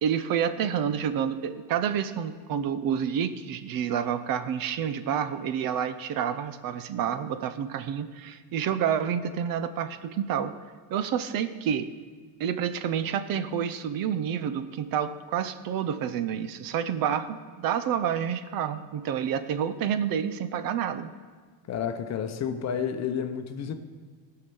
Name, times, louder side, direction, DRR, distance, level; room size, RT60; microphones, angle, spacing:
voice 1, 0.0-10.5 10.9-11.9 12.4-21.1, right 8 dB, 50° right, 0.7 m, -29 dB
voice 2, 21.7-23.7, left 7 dB, 35° left, 0.9 m, -30 dB
16.0 x 5.8 x 7.0 m
cardioid pair, 125°, 44 cm